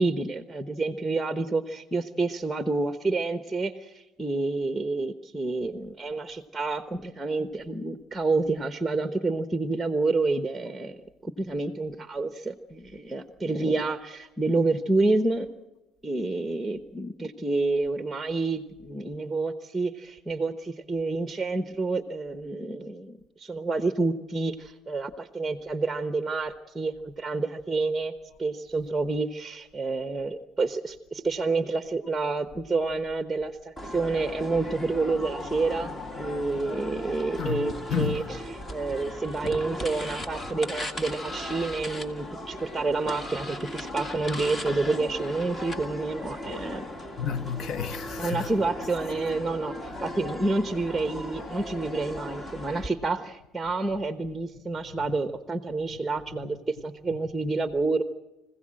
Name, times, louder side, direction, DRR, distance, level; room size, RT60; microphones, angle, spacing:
voice 1, 0.0-11.0 11.2-15.5 16.0-28.1 28.4-35.9 36.2-46.9 48.2-58.0, right 3 dB, 10° right, 1.1 m, -29 dB
sound 1, 33.8-52.9, left 1 dB, 20° left, 1.9 m, -37 dB
voice 2, 37.4-38.2 47.2-48.5, left 8 dB, 55° left, 1.1 m, -31 dB
25.5 x 16.0 x 7.7 m
cardioid pair, 125°, 0 cm